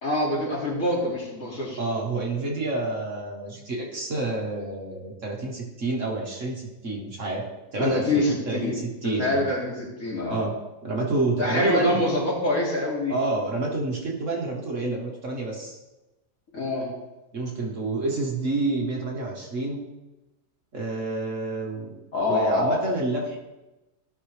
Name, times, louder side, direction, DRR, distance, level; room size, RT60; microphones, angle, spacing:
voice 1, 0.0-1.8 7.8-8.8 9.0-10.4 11.4-13.1 16.5-16.9 22.1-22.8, left 1 dB, 55° left, -5 dB, 3.1 m, -25 dB
voice 2, 1.8-7.5 7.7-9.4 10.3-10.5 10.8-12.0 13.1-15.8 17.3-19.8 20.7-22.0 22.3-23.4, right 2 dB, 50° right, -1 dB, 1.8 m, -29 dB
15.5 x 6.0 x 3.3 m, 1.0 s
omnidirectional pair, 1.7 m